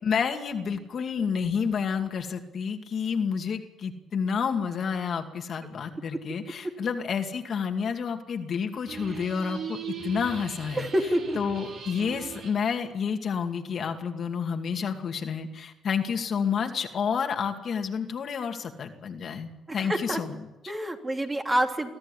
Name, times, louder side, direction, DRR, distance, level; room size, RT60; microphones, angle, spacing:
voice 1, 0.0-20.5, left 6 dB, 55° left, 4 dB, 2.5 m, -30 dB
sound 1, 8.9-12.6, right 6 dB, 65° right, 5.8 m, -39 dB
voice 2, 10.8-11.4 20.1-20.2 20.7-21.9, right 1 dB, 20° right, 3 dB, 3.1 m, -26 dB
23.5 x 14.5 x 10.0 m, 0.98 s
cardioid pair, 90°, 0 cm